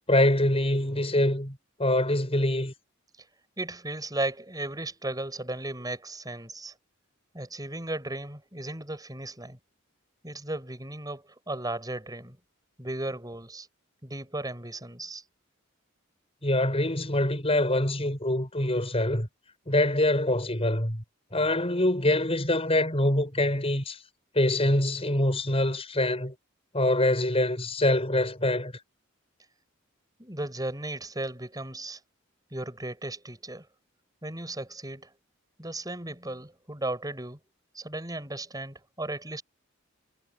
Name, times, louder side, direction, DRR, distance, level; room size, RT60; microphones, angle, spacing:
voice 1, 0.1-2.7 16.4-19.3 19.7-21.0 21.3-24.0 24.3-26.3 26.7-28.7, left 1 dB, 30° left, 7.6 m, -25 dB
voice 2, 3.6-6.7 7.3-9.6 10.2-12.4 12.8-13.7 14.0-15.2 30.2-32.0 32.5-33.7 34.2-35.1 35.6-37.4 37.7-39.4, right 2 dB, 20° right, 6.1 m, -35 dB
head